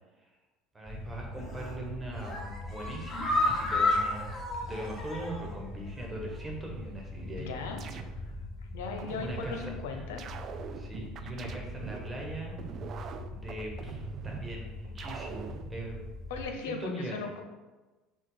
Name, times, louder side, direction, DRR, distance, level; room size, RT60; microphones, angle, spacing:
voice 1, 0.7-7.6 9.2-10.0 10.7-12.5 13.3-16.0 16.5-17.3, right 1 dB, 15° right, -1 dB, 1.2 m, -41 dB
sound 1, 0.9-16.5, left 2 dB, 5° left, 0.8 m, -42 dB
sound 2, 1.4-1.8 2.1-5.5 5.9-6.0 6.3-6.4, left 2 dB, 25° left, 1.3 m, -31 dB
sound 3, 7.2-8.5 9.0-9.7 10.2-12.1 12.6-14.5 15.0-15.7, right 7 dB, 45° right, 0.3 m, -43 dB
voice 2, 7.4-8.1 8.7-10.2 16.3-17.4, left 4 dB, 90° left, 4 dB, 0.7 m, -38 dB
6.0 x 2.3 x 3.9 m, 1.2 s
supercardioid pair, 105°, 0 cm